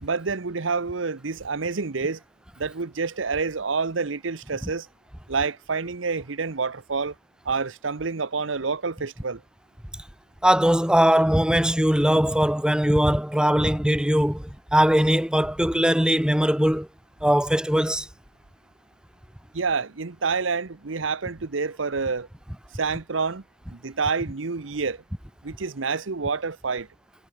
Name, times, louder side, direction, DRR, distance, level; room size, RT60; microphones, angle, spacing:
voice 1, 0.0-2.2 2.6-4.9 5.3-7.1 7.4-9.4 19.5-22.3 22.7-23.4 23.7-25.0 25.4-26.9, right 4 dB, 75° right, 0.9 m, -28 dB
voice 2, 10.4-16.9 17.2-18.1, equal, 5° right, 1.3 m, -20 dB
head